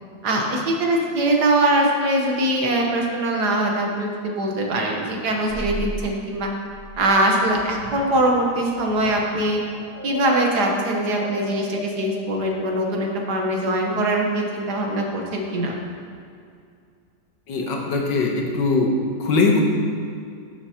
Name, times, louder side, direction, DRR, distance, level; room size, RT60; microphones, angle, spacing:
voice 1, 0.2-6.5 7.0-9.6 10.0-15.7, right 1 dB, 65° right, 1 dB, 1.6 m, -22 dB
sound 1, 5.5-14.2, right 1 dB, 40° right, 1.2 m, -36 dB
voice 2, 17.5-18.9 19.2-19.6, left 3 dB, 85° left, 0 dB, 1.8 m, -21 dB
12.5 x 7.0 x 2.9 m, 2.3 s
omnidirectional pair, 1.9 m